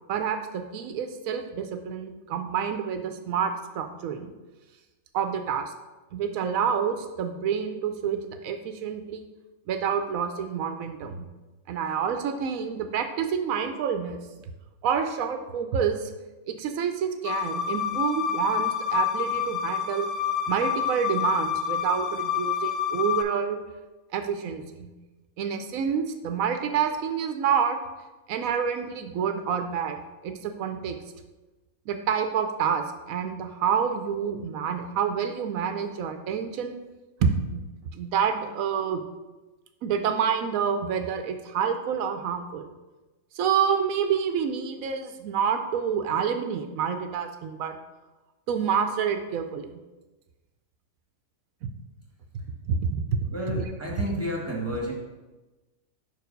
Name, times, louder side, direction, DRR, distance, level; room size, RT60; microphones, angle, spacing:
voice 1, 0.1-4.3 5.1-5.7 6.1-9.2 9.7-11.3 11.7-14.2 14.8-16.1 16.5-20.1 20.5-23.6 24.1-24.9 25.4-27.8 28.3-31.0 31.9-36.8 37.2-37.7 37.9-39.0 39.8-42.7 43.3-47.8 48.5-49.7 51.6-51.7 52.7-53.2 53.6-53.7, right 7 dB, 90° right, 7 dB, 1.0 m, -28 dB
sound 1, 17.2-23.2, left 9 dB, 60° left, 0.6 m, -28 dB
voice 2, 53.3-54.9, equal, 10° right, -2 dB, 1.4 m, -31 dB
5.3 x 4.7 x 5.1 m, 1.1 s
omnidirectional pair, 1.4 m